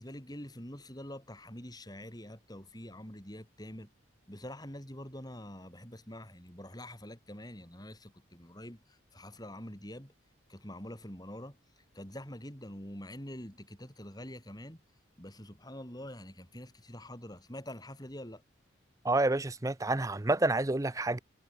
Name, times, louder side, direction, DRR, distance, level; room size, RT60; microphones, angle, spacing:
voice 1, 0.0-3.9 4.3-10.1 10.5-14.8 15.2-18.4, left 1 dB, 20° left, 6.8 m, -46 dB
voice 2, 19.0-21.2, right 2 dB, 15° right, 0.5 m, -28 dB
head